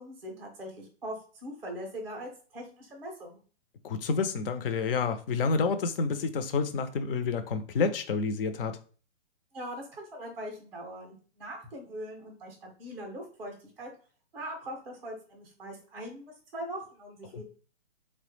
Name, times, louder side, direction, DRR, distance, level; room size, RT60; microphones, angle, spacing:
voice 1, 0.0-3.4 9.5-13.9 14.3-17.4, equal, 10° right, 0.4 m, -41 dB
voice 2, 3.8-8.8 17.3-17.4, left 4 dB, 55° left, 0.5 m, -29 dB
3.2 x 2.0 x 3.1 m
hypercardioid pair, 145°, 35 cm